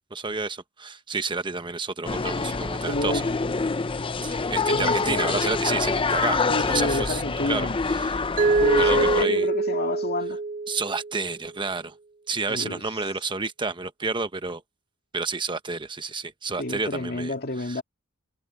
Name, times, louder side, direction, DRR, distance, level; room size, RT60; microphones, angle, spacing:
voice 1, 0.1-3.3 4.2-7.2 7.5-8.2 8.8-9.5 10.7-11.9 12.3-14.6 15.1-17.8, right 4 dB, 25° right, 1.1 m, -30 dB
sound 1, 2.0-9.2, left 4 dB, 25° left, 0.6 m, -26 dB
voice 2, 2.8-3.3 4.7-5.4 6.5-7.8 8.6-10.4 12.5-12.8 16.6-17.8, left 1 dB, 50° left, 2.3 m, -29 dB
Mallet percussion, 8.4-11.3, right 3 dB, 40° right, 0.8 m, -24 dB
head